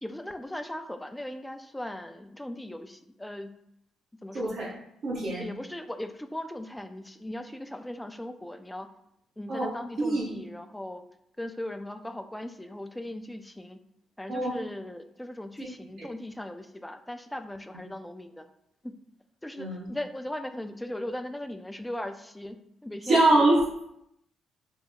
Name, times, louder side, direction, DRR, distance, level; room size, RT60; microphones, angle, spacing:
voice 1, 0.0-3.6 4.2-4.6 5.4-8.9 9.4-11.0 11.4-13.8 14.2-18.5 18.8-18.9 19.4-23.2, left 1 dB, 10° left, 8 dB, 0.3 m, -38 dB
voice 2, 4.3-4.7 5.0-5.5 9.5-9.7 10.0-10.4 14.3-14.6 16.0-16.1 19.6-19.9 23.1-23.8, right 2 dB, 70° right, -7 dB, 0.7 m, -24 dB
2.8 x 2.0 x 3.6 m, 0.77 s
hypercardioid pair, 50°, 0 cm